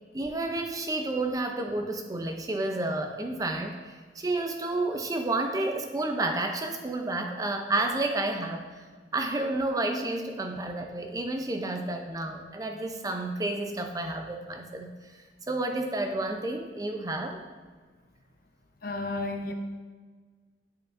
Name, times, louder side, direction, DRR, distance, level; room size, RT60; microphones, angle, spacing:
voice 1, 0.1-8.7 9.1-14.9 15.5-17.4, right 2 dB, 20° right, 4 dB, 0.5 m, -30 dB
voice 2, 18.8-19.5, left 2 dB, 50° left, 4 dB, 0.6 m, -32 dB
8.5 x 5.6 x 2.5 m, 1.5 s
head